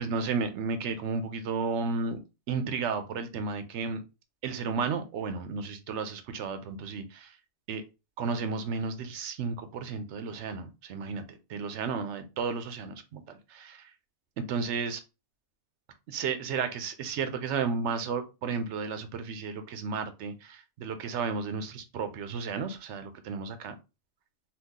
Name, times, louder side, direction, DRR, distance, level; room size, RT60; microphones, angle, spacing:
voice 1, 0.0-2.2 2.5-4.0 4.4-7.4 7.7-7.8 8.2-13.9 14.4-15.0 16.1-23.7, right 5 dB, 85° right, 9 dB, 0.9 m, -33 dB
2.9 x 2.3 x 3.6 m, 0.28 s
omnidirectional pair, 1.2 m